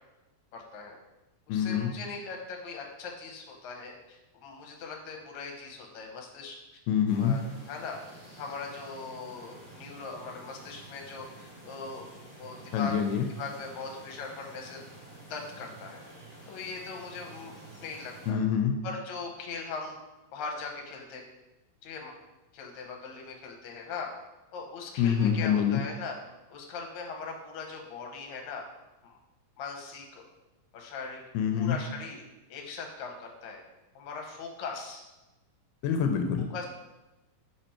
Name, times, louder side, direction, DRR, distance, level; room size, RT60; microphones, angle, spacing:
voice 1, 0.5-1.0 1.5-6.6 7.1-7.4 7.7-8.0 8.4-12.1 12.4-12.9 13.4-15.0 15.3-16.0 16.5-18.4 18.8-20.0 20.3-21.2 21.8-22.1 22.5-24.1 24.5-26.2 26.5-28.6 29.0-29.2 29.6-30.2 30.7-31.2 31.5-32.2 32.5-33.6 34.0-35.0 36.5-36.7, left 4 dB, 70° left, 1 dB, 2.1 m, -40 dB
voice 2, 1.5-1.9 6.9-7.4 12.7-13.3 18.3-18.8 25.0-25.8 31.3-31.8 35.8-36.5, left 8 dB, 85° left, 5 dB, 2.2 m, -26 dB
sound 1, 7.1-18.3, right 1 dB, 30° right, 2.5 m, -50 dB
5.1 x 4.9 x 4.4 m, 1.0 s
omnidirectional pair, 3.7 m